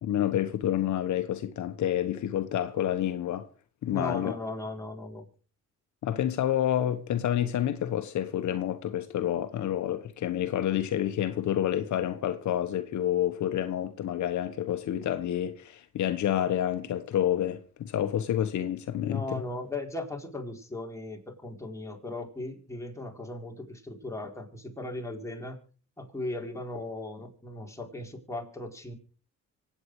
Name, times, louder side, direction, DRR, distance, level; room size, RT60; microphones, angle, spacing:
voice 1, 0.0-3.5 3.8-4.4 6.0-19.4, left 11 dB, 70° left, 1.3 m, -29 dB
voice 2, 3.8-5.3 19.0-25.6 26.0-28.9, left 2 dB, 10° left, 4.4 m, -37 dB
25.0 x 8.8 x 4.9 m
cardioid pair, 90°, 30 cm